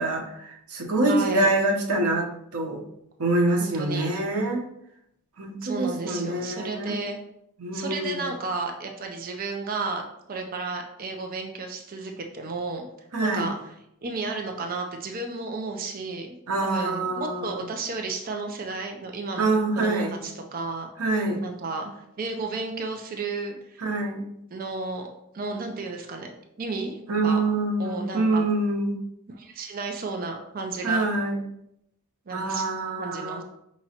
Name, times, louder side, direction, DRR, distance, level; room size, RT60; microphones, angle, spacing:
voice 1, 0.0-2.8 3.2-4.6 5.4-7.0 7.6-8.2 13.1-13.5 16.5-17.7 19.4-20.2 21.0-21.4 23.8-24.3 27.1-29.0 30.8-31.4 32.3-33.4, right 2 dB, 85° right, 1 dB, 0.8 m, -25 dB
voice 2, 1.1-1.5 3.6-4.1 5.6-7.2 7.7-12.9 13.2-13.6 14.0-16.3 16.6-19.5 19.7-20.9 21.4-23.8 24.5-25.1 25.3-26.3 26.6-27.4 27.8-28.5 29.3-31.1 32.3-32.7 33.0-33.4, right 3 dB, 40° right, 3 dB, 0.5 m, -33 dB
5.6 x 3.0 x 2.8 m, 0.77 s
head